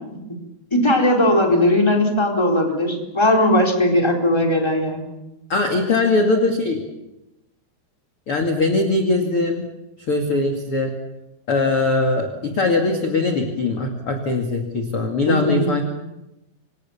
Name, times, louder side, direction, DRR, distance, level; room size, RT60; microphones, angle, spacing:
voice 1, 0.7-5.0 15.3-15.7, left 1 dB, 5° left, 2 dB, 3.8 m, -18 dB
voice 2, 5.5-6.8 8.3-9.7 10.1-11.0 11.5-15.8, left 3 dB, 40° left, 4 dB, 2.7 m, -21 dB
27.5 x 25.5 x 7.2 m, 0.94 s
omnidirectional pair, 4.7 m